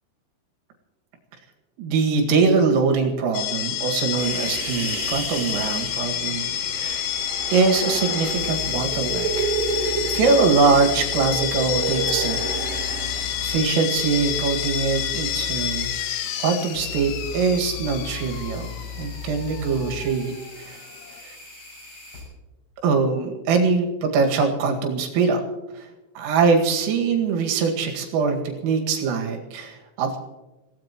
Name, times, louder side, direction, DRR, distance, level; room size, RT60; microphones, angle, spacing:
voice 1, 1.8-7.0 7.5-12.7 13.4-20.8 21.2-21.4 22.8-25.4 25.7-25.9 26.2-30.2, right 4 dB, 80° right, 3 dB, 4.7 m, -23 dB
sound 1, 3.3-21.2, left 11 dB, 75° left, 3.1 m, -29 dB
Human voice, 4.2-13.6, right 5 dB, 60° right, 3.8 m, -31 dB
sound 2, 8.2-22.2, left 5 dB, 30° left, 7.5 m, -37 dB
26.0 x 17.5 x 3.1 m, 1.1 s
omnidirectional pair, 5.9 m